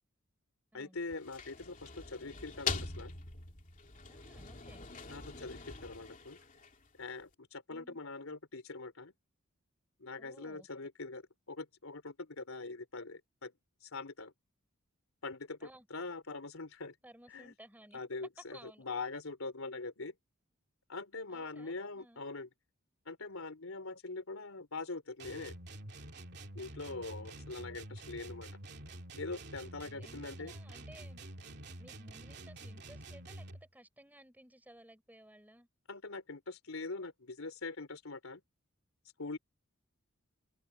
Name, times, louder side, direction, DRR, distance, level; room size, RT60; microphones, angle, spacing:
voice 1, 0.7-3.1 5.1-6.4 7.0-9.1 10.0-11.2 11.5-13.5 13.8-14.3 15.2-16.9 17.3-17.5 17.9-20.1 20.9-22.5 23.0-25.5 26.5-28.5 29.2-30.5 35.9-38.4 39.2-39.4, left 3 dB, 90° left, 3.3 m, -43 dB
sound 1, 1.0-7.0, left 5 dB, 40° left, 2.8 m, -43 dB
voice 2, 4.1-4.8 7.7-8.0 10.2-10.7 15.6-15.9 17.0-18.0 18.5-18.9 21.3-22.2 30.0-31.2 31.8-35.7, right 1 dB, 10° right, 4.5 m, -58 dB
sound 2, 25.2-33.7, right 1 dB, 55° right, 2.7 m, -48 dB
open air
head